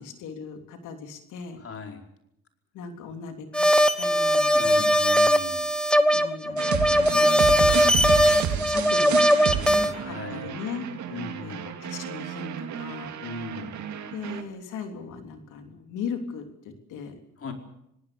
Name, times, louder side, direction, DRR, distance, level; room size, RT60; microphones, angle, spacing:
voice 1, 0.0-1.6 2.7-3.7 4.0-5.0 6.1-6.7 7.1-9.3 9.6-10.8 11.4-13.2 14.1-17.2, left 6 dB, 90° left, 5 dB, 3.3 m, -38 dB
voice 2, 1.6-2.1 4.4-5.7 9.5-10.5 11.1-11.6 13.2-13.8 17.4-17.5, left 5 dB, 50° left, 3 dB, 4.8 m, -39 dB
sound 1, 3.5-9.9, equal, 5° left, 1.4 m, -20 dB
sound 2, 6.6-14.4, right 8 dB, 70° right, 2.4 m, -31 dB
27.0 x 18.5 x 7.0 m, 0.81 s
cardioid pair, 90°, 30 cm